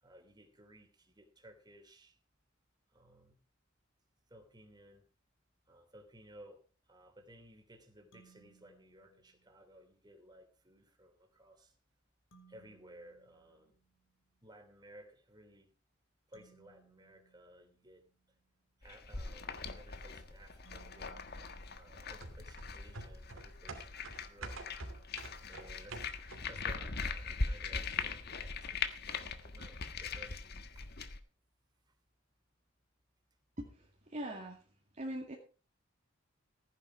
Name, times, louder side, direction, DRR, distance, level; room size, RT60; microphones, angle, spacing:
voice 1, 0.0-2.2 2.9-3.4 4.3-5.0 5.7-6.6 6.9-11.7 12.5-13.7 14.4-15.7 16.3-18.0 18.8-21.1 21.7-24.6 25.5-26.1 26.4-28.7 29.1-30.9, right 1 dB, 20° right, 5 dB, 3.1 m, -58 dB
sound 1, 8.1-9.8 12.3-14.3 16.3-18.5 20.7-22.7, right 5 dB, 80° left, 3.6 m, -67 dB
sound 2, 18.8-31.2, left 4 dB, 55° left, 1.4 m, -41 dB
sound 3, 22.2-26.7 27.0-27.1, right 2 dB, 85° right, 2.7 m, -48 dB
voice 2, 33.6-34.6 35.0-35.4, right 1 dB, 35° right, -1 dB, 2.2 m, -42 dB
15.5 x 10.0 x 4.6 m, 0.36 s
head